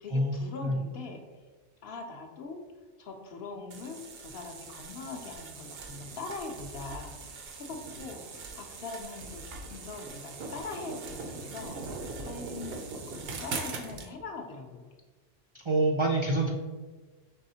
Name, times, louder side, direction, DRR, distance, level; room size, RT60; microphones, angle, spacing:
voice 1, 0.0-1.5 1.8-2.7 3.0-14.9, left 3 dB, 65° left, 2 dB, 0.8 m, -42 dB
sound 1, 3.7-14.1, right 3 dB, 65° right, 0.8 m, -41 dB
voice 2, 15.7-16.5, right 2 dB, 45° right, -2 dB, 0.4 m, -26 dB
5.4 x 3.4 x 2.7 m, 1.3 s
omnidirectional pair, 1.1 m